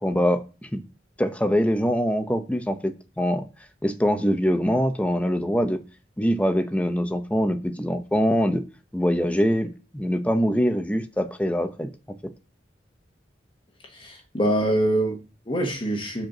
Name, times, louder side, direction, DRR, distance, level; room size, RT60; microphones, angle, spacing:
voice 1, 0.0-0.8 1.2-3.4 3.8-5.8 6.2-8.6 8.9-11.9, equal, 10° left, 0.7 m, -23 dB
voice 2, 13.9-16.3, right 1 dB, 30° left, 1.1 m, -25 dB
5.2 x 4.5 x 6.0 m
head